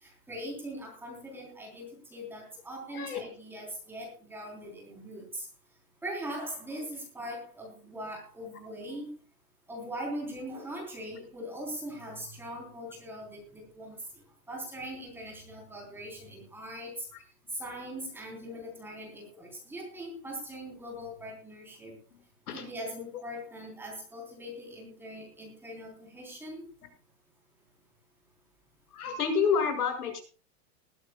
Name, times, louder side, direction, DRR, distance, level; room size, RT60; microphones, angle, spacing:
voice 1, 0.0-5.5 6.0-9.1 9.7-14.0 14.5-17.1 17.5-21.9 22.5-26.6, equal, 5° right, 0 dB, 3.6 m, -41 dB
voice 2, 2.9-3.2 17.1-17.2 22.1-22.2 22.5-22.7 28.9-30.2, left 6 dB, 70° left, 7 dB, 6.0 m, -29 dB
20.0 x 14.5 x 2.3 m, 0.37 s
supercardioid pair, 175°, 47 cm